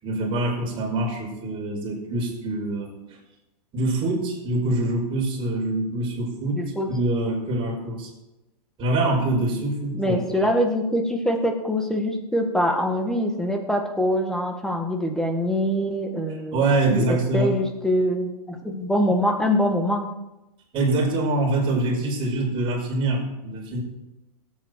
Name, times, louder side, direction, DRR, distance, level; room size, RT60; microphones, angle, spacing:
voice 1, 0.0-2.9 3.7-6.6 6.9-8.1 8.8-10.5 16.5-17.6 20.7-23.8, right 2 dB, 25° right, -2 dB, 5.4 m, -24 dB
voice 2, 6.5-6.9 9.9-16.6 16.9-20.1, equal, 5° left, 3 dB, 1.8 m, -24 dB
16.5 x 8.6 x 4.7 m, 0.96 s
hypercardioid pair, 130°, 20 cm